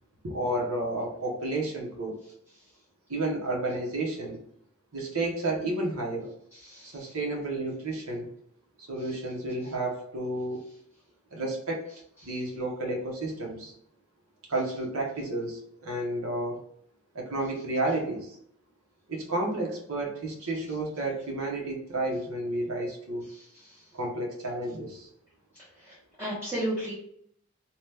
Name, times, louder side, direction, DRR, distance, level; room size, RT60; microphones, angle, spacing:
voice 1, 0.2-2.2 3.1-4.4 4.9-6.3 6.8-8.3 8.8-10.7 11.3-11.9 12.2-13.7 14.5-16.6 17.1-18.4 19.1-23.3 23.9-25.1, right 2 dB, 70° right, -1 dB, 0.8 m, -31 dB
voice 2, 6.6-7.1 26.2-26.9, right 1 dB, 10° right, -9 dB, 0.7 m, -32 dB
2.8 x 2.2 x 3.3 m, 0.70 s
head